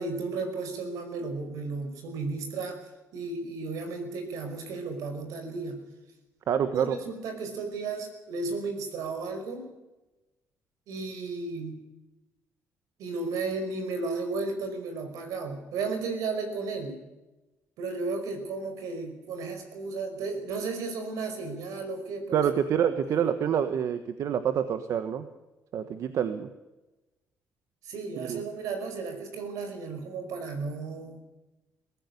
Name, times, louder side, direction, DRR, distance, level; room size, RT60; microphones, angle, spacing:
voice 1, 0.0-2.8 3.1-5.8 6.7-9.7 10.9-11.8 13.0-17.0 17.8-22.5 23.1-23.3 27.8-31.2, right 3 dB, 85° right, 7 dB, 5.2 m, -34 dB
voice 2, 6.5-7.0 22.3-25.3 25.7-26.5 28.2-28.4, right 8 dB, 65° right, 10 dB, 1.4 m, -27 dB
21.5 x 15.0 x 9.7 m, 1.1 s
cardioid pair, 100°, 6 cm